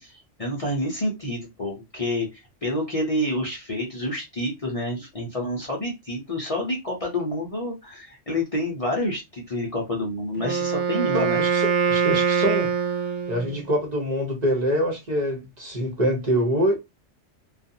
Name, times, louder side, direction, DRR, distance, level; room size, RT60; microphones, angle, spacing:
voice 1, 0.0-11.4, left 1 dB, 35° left, 0.7 m, -28 dB
Wind instrument woodwind instrument, 10.4-13.7, right 6 dB, 90° right, 0.9 m, -23 dB
voice 2, 11.1-12.7 13.3-16.7, equal, 40° right, 0.9 m, -25 dB
2.4 x 2.4 x 2.7 m
omnidirectional pair, 1.2 m